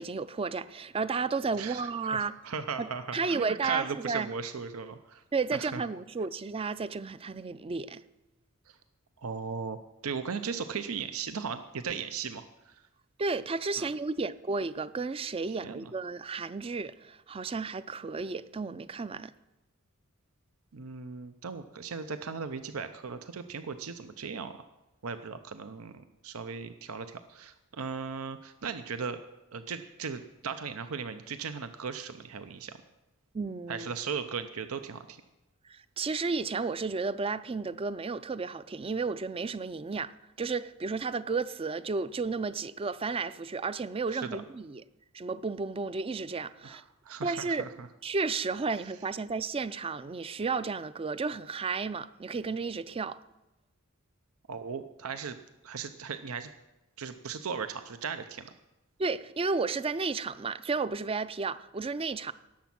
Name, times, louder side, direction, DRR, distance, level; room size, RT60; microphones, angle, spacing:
voice 1, 0.0-2.3 2.8-4.3 5.3-8.0 13.2-19.3 33.3-33.9 35.7-40.1 40.4-44.8 45.1-46.8 47.2-47.7 48.0-53.2 59.0-62.3, right 4 dB, 25° right, 0.4 m, -32 dB
voice 2, 1.6-5.2 5.5-5.8 8.7-8.8 9.2-9.8 10.0-12.8 13.8-13.9 15.5-15.9 20.7-24.6 25.0-29.2 29.5-32.8 33.7-35.2 44.1-44.4 46.6-47.9 54.5-55.4 55.6-56.5 57.0-58.5, right 6 dB, 75° right, 0.7 m, -37 dB
18.0 x 7.2 x 6.0 m
head